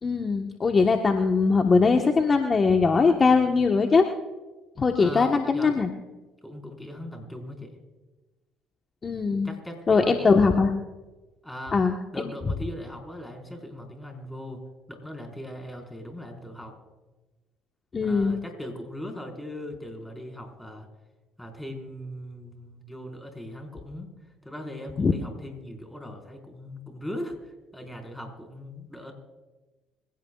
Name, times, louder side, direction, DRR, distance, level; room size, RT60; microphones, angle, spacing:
voice 1, 0.0-4.0 4.8-5.9 9.0-9.5 9.9-10.7 11.7-12.3 17.9-18.3 25.0-25.1, left 4 dB, 35° left, 3 dB, 1.3 m, -21 dB
voice 2, 5.0-5.8 6.4-7.8 9.3-10.7 11.4-11.8 12.1-16.7 18.0-20.9 21.4-24.1 24.4-29.1, left 1 dB, 5° left, 2 dB, 4.8 m, -39 dB
25.5 x 16.5 x 2.4 m, 1.2 s
supercardioid pair, 65°, 0 cm